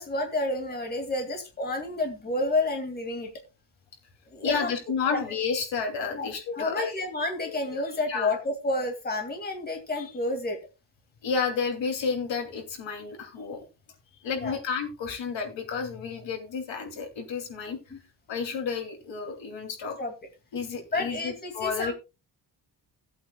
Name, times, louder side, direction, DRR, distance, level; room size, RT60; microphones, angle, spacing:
voice 1, 0.0-3.3 4.3-4.7 5.1-5.2 6.1-6.3 6.5-10.6 14.4-14.5 17.9-18.0 20.0-20.1 20.9-21.9, left 2 dB, 20° left, 4 dB, 2.2 m, -30 dB
voice 2, 4.4-7.0 7.4-7.8 8.1-8.3 11.2-13.6 14.2-17.8 18.3-20.0 20.5-21.9, left 5 dB, 75° left, 4 dB, 2.9 m, -31 dB
17.5 x 8.5 x 2.3 m, 0.28 s
wide cardioid pair, 165°, 44 cm